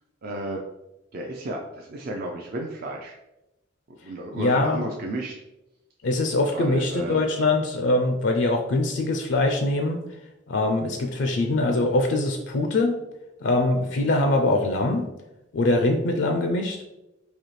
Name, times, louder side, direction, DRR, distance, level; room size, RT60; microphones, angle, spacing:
voice 1, 0.2-0.6 1.1-3.1 4.0-5.3 6.5-7.2, right 1 dB, 50° right, 0 dB, 0.4 m, -33 dB
voice 2, 4.3-4.9 6.0-10.2 10.5-13.0 13.4-15.1 15.5-16.8, left 2 dB, 65° left, 4 dB, 0.4 m, -23 dB
4.1 x 2.7 x 3.1 m, 0.95 s
head